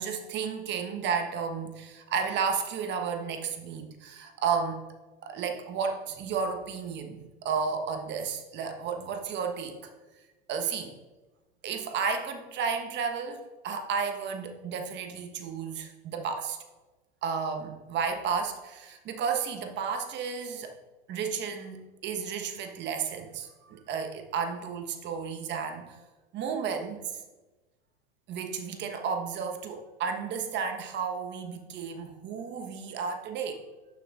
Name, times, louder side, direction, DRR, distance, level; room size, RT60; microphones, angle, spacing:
voice 1, 0.0-4.9 5.2-9.8 10.5-10.9 11.6-16.6 17.2-20.8 21.1-25.9 26.3-27.0 28.3-33.6, right 6 dB, 35° right, 6 dB, 1.1 m, -32 dB
11.5 x 7.0 x 2.4 m, 1.2 s
hypercardioid pair, 90°, 31 cm